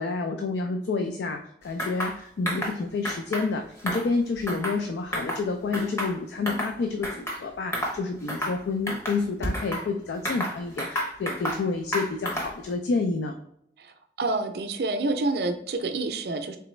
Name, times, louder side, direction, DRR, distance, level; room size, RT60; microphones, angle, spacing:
voice 1, 0.0-13.4, left 3 dB, 80° left, 6 dB, 0.4 m, -29 dB
sound 1, 1.8-2.2 2.5-2.8 3.0-3.5 3.8-4.8 5.1-5.4 5.7-6.7 7.0-7.4 7.7-8.0 8.3-8.6 8.9-9.8 10.3-11.6 11.9-12.6, equal, 15° left, 0.7 m, -30 dB
voice 2, 13.8-16.6, right 2 dB, 65° right, 7 dB, 0.5 m, -28 dB
3.8 x 3.3 x 3.1 m, 0.72 s
head